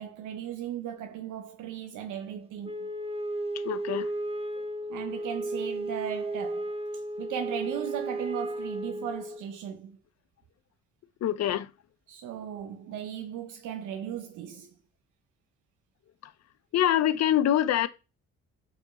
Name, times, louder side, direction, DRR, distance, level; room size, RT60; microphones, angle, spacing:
voice 1, 0.0-2.9 4.9-10.0 12.1-14.7, right 9 dB, 85° right, 0.7 m, -37 dB
Wind instrument woodwind instrument, 2.6-9.4, right 1 dB, 20° right, 0.9 m, -34 dB
voice 2, 3.6-4.1 11.2-11.7 16.7-17.9, left 11 dB, 60° left, 0.6 m, -24 dB
5.1 x 4.5 x 4.3 m
cardioid pair, 90°, 30 cm